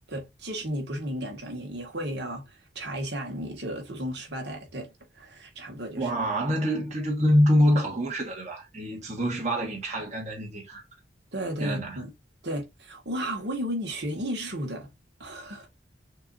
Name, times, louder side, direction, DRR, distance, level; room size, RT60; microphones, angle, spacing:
voice 1, 0.1-4.9 5.1-6.1 11.3-12.1 12.4-14.9 15.2-15.7, equal, 60° right, 1.7 m, -34 dB
voice 2, 6.0-10.8 11.6-12.0, equal, 40° right, 1.6 m, -25 dB
6.4 x 2.7 x 2.6 m
head